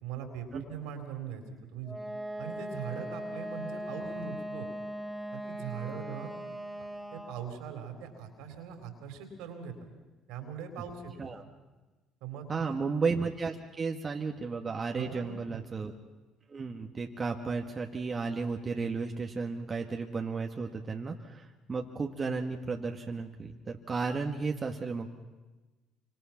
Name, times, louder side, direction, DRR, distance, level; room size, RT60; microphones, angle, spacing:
voice 1, 0.0-1.4 1.7-2.0 2.4-4.7 5.3-6.3 6.8-9.7 10.3-11.3 12.2-12.7 14.9-15.6, right 7 dB, 75° right, 6 dB, 3.9 m, -41 dB
Wind instrument woodwind instrument, 1.9-7.6, right 1 dB, 5° right, 4.2 m, -39 dB
voice 2, 12.5-15.9 16.5-25.1, right 4 dB, 35° right, 2 dB, 2.0 m, -33 dB
28.0 x 26.0 x 6.0 m, 1.2 s
hypercardioid pair, 60°, 0 cm